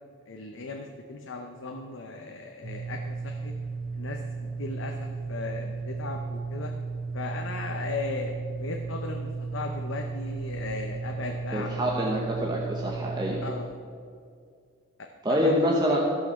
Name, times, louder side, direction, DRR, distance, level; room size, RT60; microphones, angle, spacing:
voice 1, 0.3-3.5 3.9-6.7 7.1-11.9 13.4-13.7 15.3-15.6, left 3 dB, 65° left, 2 dB, 0.8 m, -37 dB
sound 1, 2.6-13.5, right 4 dB, 75° right, 2.0 m, -35 dB
voice 2, 11.5-13.4 15.2-16.0, equal, 20° right, -2 dB, 1.0 m, -26 dB
15.0 x 5.8 x 6.4 m, 2.2 s
head